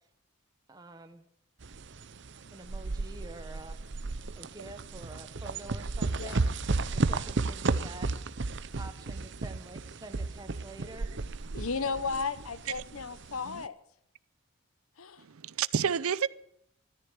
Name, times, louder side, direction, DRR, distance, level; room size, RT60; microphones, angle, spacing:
voice 1, 0.7-1.3 2.5-3.8 4.4-6.5 6.9-8.1 8.8-11.1, right 2 dB, 20° right, 0.9 m, -47 dB
sound 1, 1.6-13.6, right 3 dB, 55° right, 0.7 m, -33 dB
voice 2, 11.5-13.8 15.0-15.2, left 5 dB, 80° left, 0.9 m, -34 dB
voice 3, 15.2-16.3, right 7 dB, 90° right, 0.6 m, -29 dB
14.0 x 14.0 x 7.1 m
head